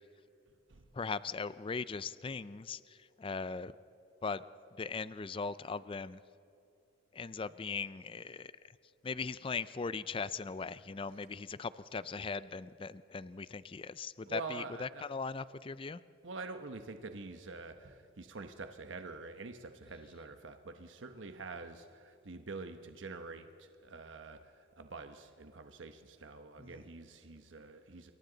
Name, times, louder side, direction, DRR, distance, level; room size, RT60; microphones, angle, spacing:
voice 1, 0.9-3.7 4.2-4.4 4.8-6.2 7.1-8.5 9.0-16.0 26.6-26.7, left 4 dB, 30° left, 16 dB, 0.4 m, -39 dB
voice 2, 14.2-15.0 16.2-28.1, right 3 dB, 85° right, 7 dB, 1.0 m, -46 dB
28.5 x 23.0 x 4.0 m, 2.8 s
head